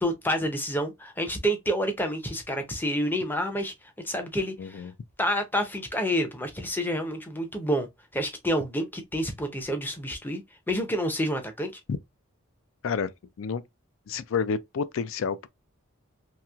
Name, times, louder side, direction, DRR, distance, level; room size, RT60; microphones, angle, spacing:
voice 1, 0.0-3.7 4.0-4.9 5.2-7.9 8.1-10.4 10.7-11.7, equal, 10° left, 0.5 m, -28 dB
voice 2, 4.6-4.9 11.9-12.0 12.8-13.1 13.4-13.6 14.1-15.5, left 6 dB, 65° left, 0.4 m, -29 dB
2.9 x 2.8 x 2.3 m
head